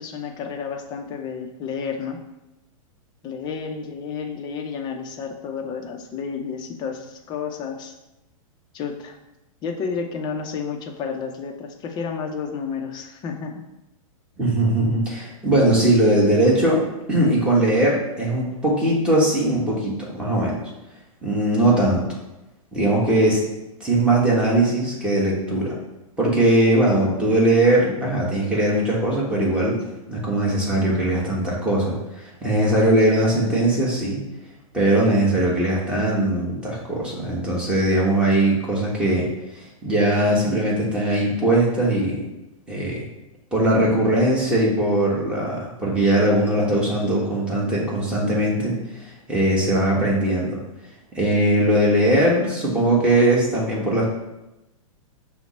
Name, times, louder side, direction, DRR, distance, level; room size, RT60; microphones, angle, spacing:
voice 1, 0.0-2.2 3.2-7.9 8.7-9.2 9.6-13.7, left 6 dB, 25° left, 3 dB, 0.5 m, -31 dB
voice 2, 14.4-16.8 17.1-20.6 21.2-22.1 22.7-23.5 23.8-25.8 26.2-29.7 30.1-34.2 34.7-39.3 39.5-42.2 42.7-43.0 43.5-48.7 49.3-50.6 51.1-54.0, right 1 dB, 5° right, -5 dB, 1.2 m, -20 dB
5.6 x 2.1 x 4.2 m, 0.97 s
hypercardioid pair, 135°, 18 cm